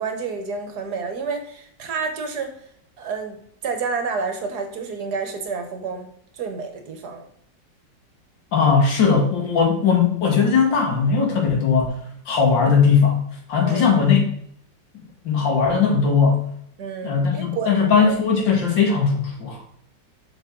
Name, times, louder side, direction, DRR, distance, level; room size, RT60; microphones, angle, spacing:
voice 1, 0.0-2.6 3.0-7.3 13.6-14.1 16.8-18.1, right 5 dB, 65° right, 5 dB, 1.5 m, -30 dB
voice 2, 8.5-11.9 12.3-13.2 13.5-14.2 14.9-16.4 17.0-19.6, left 5 dB, 80° left, 0 dB, 2.4 m, -19 dB
7.2 x 5.3 x 3.7 m, 0.67 s
omnidirectional pair, 2.0 m